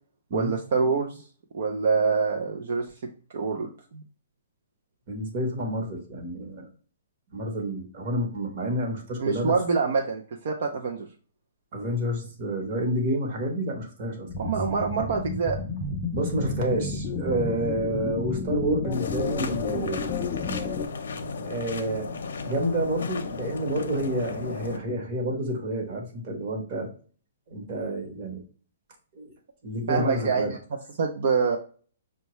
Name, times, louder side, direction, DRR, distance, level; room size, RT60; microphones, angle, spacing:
voice 1, 0.3-1.2 1.5-4.0 9.2-11.1 14.4-15.6 29.9-30.5 31.0-31.6, right 5 dB, 50° right, 2 dB, 0.5 m, -26 dB
voice 2, 5.1-6.7 7.3-9.5 11.7-14.5 16.1-20.0 21.4-22.1 22.4-26.9 27.5-28.4 29.1-29.3 29.6-30.6, right 1 dB, 30° right, 1 dB, 0.9 m, -29 dB
sound 1, 14.3-20.9, left 4 dB, 15° left, 0.3 m, -31 dB
sound 2, 18.9-24.8, left 4 dB, 75° left, 0.6 m, -35 dB
5.4 x 2.2 x 2.9 m, 0.41 s
hypercardioid pair, 175°, 0 cm